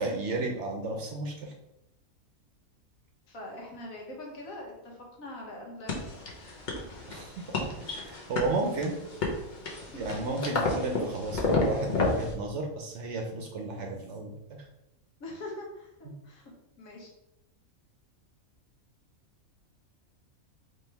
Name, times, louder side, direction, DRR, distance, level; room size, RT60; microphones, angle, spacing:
voice 1, 0.0-1.5 7.1-9.0 9.9-14.3, right 2 dB, 60° right, 2 dB, 0.9 m, -33 dB
voice 2, 3.3-6.3 9.9-10.1 15.2-16.5 16.8-17.1, left 1 dB, 75° left, -1 dB, 1.5 m, -43 dB
sound 1, 5.9-12.3, left 3 dB, 40° left, 0.7 m, -31 dB
4.4 x 3.3 x 3.3 m, 0.87 s
omnidirectional pair, 1.5 m